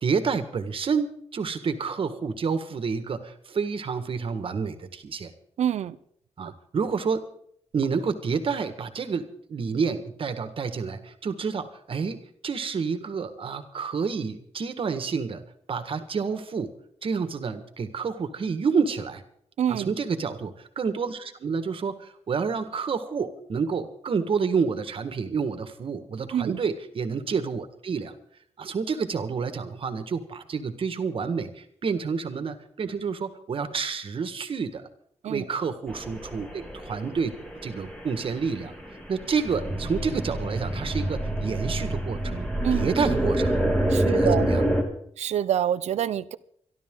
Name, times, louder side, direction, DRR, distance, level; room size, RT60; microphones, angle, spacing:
voice 1, 0.0-5.3 6.4-7.2 7.7-15.4 15.7-16.7 17.0-19.2 19.7-28.1 28.6-34.9 35.2-37.3 37.6-38.7 39.1-43.6 44.1-44.6, right 5 dB, 55° right, 9 dB, 1.7 m, -29 dB
voice 2, 5.6-6.0 19.6-19.9 26.3-26.6 35.2-35.4 42.6-42.9 43.9-44.5 45.2-46.4, right 9 dB, 90° right, 16 dB, 0.7 m, -26 dB
sound 1, 35.9-44.8, right 1 dB, 10° left, 2.9 m, -27 dB
26.0 x 12.0 x 3.9 m, 0.67 s
wide cardioid pair, 130°, 11 cm